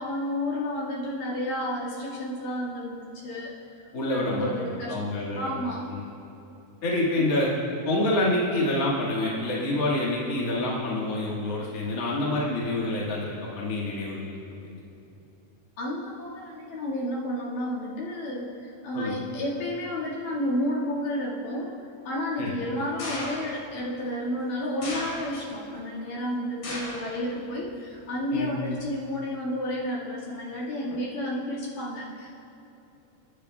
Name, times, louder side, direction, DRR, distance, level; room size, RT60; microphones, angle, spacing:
voice 1, 0.0-3.8 4.0-5.0 5.4-5.8 7.2-7.7 15.8-21.8 22.1-32.3, left 1 dB, 60° left, -6 dB, 3.4 m, -31 dB
voice 2, 3.9-5.5 5.9-6.0 6.8-7.5 7.8-14.8 18.9-19.2 22.4-22.5 28.3-28.5, left 1 dB, 40° left, -5 dB, 1.2 m, -27 dB
sound 1, 23.0-23.7 24.8-25.6 26.6-27.1 27.5-28.0 28.8-28.9, left 2 dB, 75° left, 4.2 m, -36 dB
29.5 x 10.0 x 2.3 m, 2.9 s
omnidirectional pair, 4.6 m